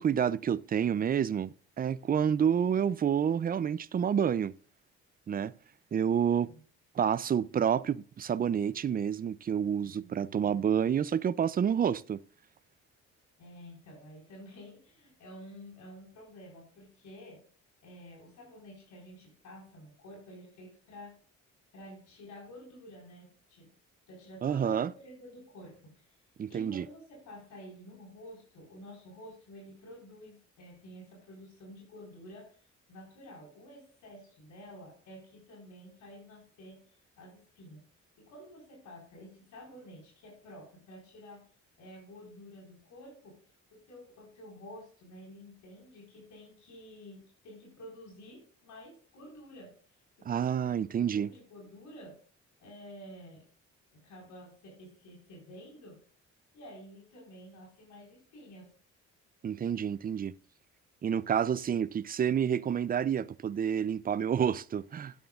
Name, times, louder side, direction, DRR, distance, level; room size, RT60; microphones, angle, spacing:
voice 1, 0.0-4.5 5.3-5.5 5.9-6.5 7.0-12.2 24.4-24.9 26.4-26.9 50.3-51.3 59.4-60.3 61.0-65.1, right 8 dB, 30° right, 0.4 m, -29 dB
voice 2, 6.3-6.6 9.8-10.6 13.4-17.4 17.8-21.2 21.7-23.7 24.1-26.2 26.5-37.8 38.2-41.5 41.8-43.4 43.7-52.2 52.6-53.5 53.9-56.0 56.5-58.7, equal, 75° left, 4.6 m, -50 dB
13.0 x 9.5 x 2.4 m
cardioid pair, 90°, 30 cm